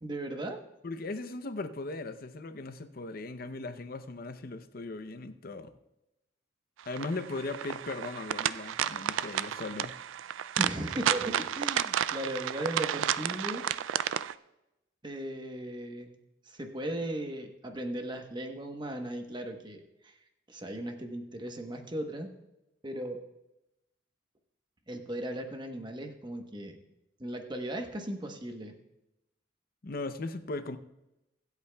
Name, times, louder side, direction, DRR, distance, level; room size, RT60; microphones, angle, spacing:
voice 1, 0.0-0.6 10.6-13.6 15.0-16.2 16.4-20.2 20.5-22.3 22.8-23.2 24.9-26.8 27.2-28.7, right 1 dB, 25° right, 4 dB, 1.1 m, -37 dB
voice 2, 0.8-5.7 6.9-10.0 29.8-30.8, left 3 dB, 50° left, 10 dB, 0.7 m, -38 dB
sound 1, 6.9-14.3, right 10 dB, 85° right, 0.3 m, -32 dB
24.5 x 8.2 x 2.3 m, 0.92 s
head